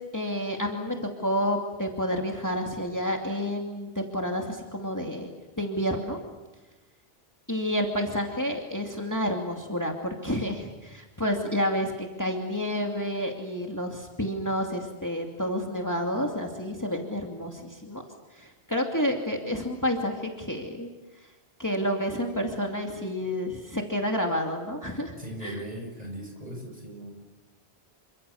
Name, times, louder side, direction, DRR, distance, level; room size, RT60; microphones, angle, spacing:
voice 1, 0.1-1.0 1.2-5.3 5.6-6.2 7.5-18.0 18.3-20.9 21.6-25.1 25.4-25.6, equal, 15° left, 2 dB, 2.6 m, -29 dB
voice 2, 25.2-27.1, right 1 dB, 40° right, 2 dB, 6.9 m, -38 dB
28.5 x 25.5 x 7.1 m, 1.1 s
omnidirectional pair, 1.1 m